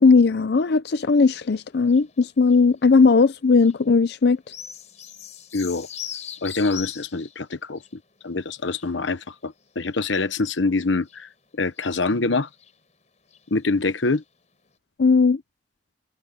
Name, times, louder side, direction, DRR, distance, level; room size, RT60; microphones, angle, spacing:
voice 1, 0.0-4.4 15.0-15.4, left 4 dB, 60° left, 0.5 m, -17 dB
sound 1, 1.3-3.8 4.1-7.5 7.8-10.5 11.1-11.2 11.6-12.2 12.5-13.0 13.3-13.7 14.1-14.2 14.7-14.8, left 10 dB, 40° left, 4.5 m, -41 dB
voice 2, 5.5-5.9 6.4-7.8 8.2-11.3 11.6-12.5 13.5-14.2, left 3 dB, 90° left, 1.1 m, -25 dB
head